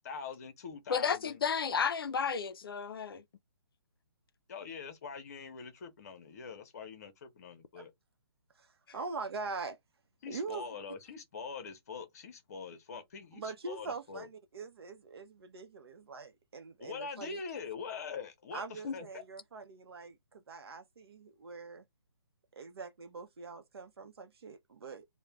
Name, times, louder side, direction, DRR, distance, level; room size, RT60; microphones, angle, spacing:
voice 1, 0.0-1.4 4.5-7.9 10.2-14.3 16.8-19.2, left 5 dB, 35° left, 0.8 m, -44 dB
voice 2, 0.9-3.2 18.8-18.9, left 6 dB, 60° left, 0.4 m, -32 dB
voice 3, 8.6-9.8 10.3-10.6 13.3-17.4 18.5-21.8 22.6-25.0, right 4 dB, 65° right, 0.7 m, -43 dB
2.4 x 2.1 x 3.1 m
hypercardioid pair, 165°, 14 cm